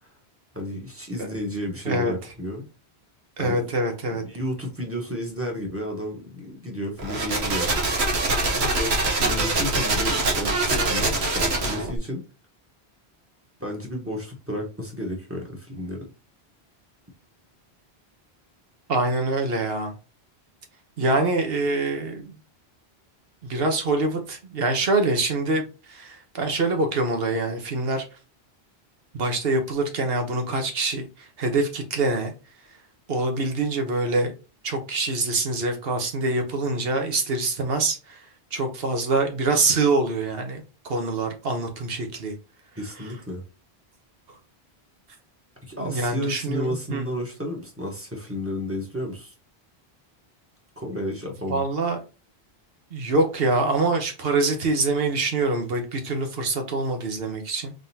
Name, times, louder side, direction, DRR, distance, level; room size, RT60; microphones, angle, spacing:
voice 1, 0.5-2.6 3.4-3.8 4.1-8.0 8.5-12.2 13.6-16.1 42.8-43.4 45.6-49.3 50.8-51.6, left 1 dB, 15° right, 1.1 m, -32 dB
voice 2, 3.4-4.2 18.9-19.9 21.0-22.4 23.4-28.0 29.1-31.1 31.4-32.3 33.1-34.3 34.6-38.2 38.5-42.3 45.8-47.0 51.5-52.0 52.9-57.7, right 2 dB, 65° right, 1.2 m, -25 dB
sound 1, 7.0-12.0, right 2 dB, 90° right, 1.3 m, -24 dB
3.8 x 3.6 x 2.8 m
omnidirectional pair, 1.1 m